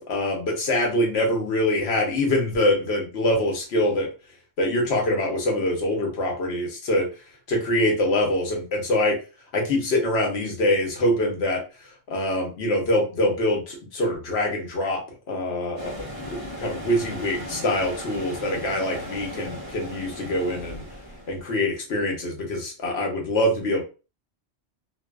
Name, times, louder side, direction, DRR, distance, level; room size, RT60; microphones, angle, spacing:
voice 1, 0.1-4.1 4.6-7.1 7.5-9.2 9.5-11.6 12.1-15.0 15.3-15.9 16.3-20.8 21.3-23.8, left 1 dB, 70° left, 0 dB, 1.0 m, -24 dB
sound 1, 15.8-21.4, left 1 dB, 35° left, 0.8 m, -37 dB
2.6 x 2.2 x 2.2 m, 0.32 s
omnidirectional pair, 1.2 m